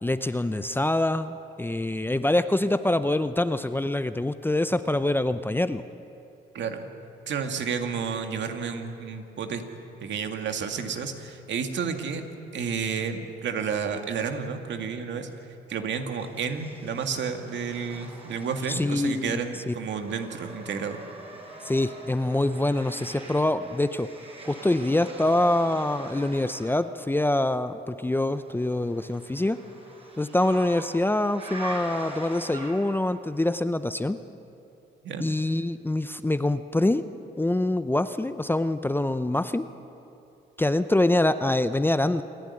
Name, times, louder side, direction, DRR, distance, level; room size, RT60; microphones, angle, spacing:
voice 1, 0.0-5.8 18.7-19.4 19.7-19.8 21.6-24.1 24.4-29.6 30.2-34.2 35.2-37.1 37.4-39.7 40.6-42.2, left 1 dB, 10° left, 12 dB, 0.7 m, -25 dB
voice 2, 6.5-6.9 7.3-9.6 10.0-12.3 12.5-15.3 15.7-21.0 35.0-35.2, right 6 dB, 65° right, 5 dB, 2.2 m, -31 dB
sound 1, 16.2-19.2 19.5-26.8 28.4-33.1, right 1 dB, 30° right, 6.0 m, -43 dB
27.5 x 11.5 x 9.8 m, 2.8 s
cardioid pair, 90°, 20 cm